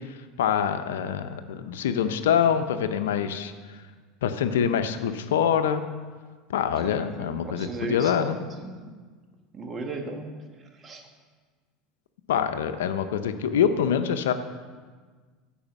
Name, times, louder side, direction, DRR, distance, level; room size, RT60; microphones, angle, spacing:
voice 1, 0.4-3.5 4.2-5.8 6.5-8.4 12.3-14.3, left 8 dB, 85° left, 10 dB, 0.6 m, -25 dB
voice 2, 6.8-8.9 9.5-10.3 10.6-11.1, right 3 dB, 30° right, 3 dB, 1.5 m, -37 dB
10.5 x 4.9 x 7.2 m, 1.5 s
supercardioid pair, 100°, 0 cm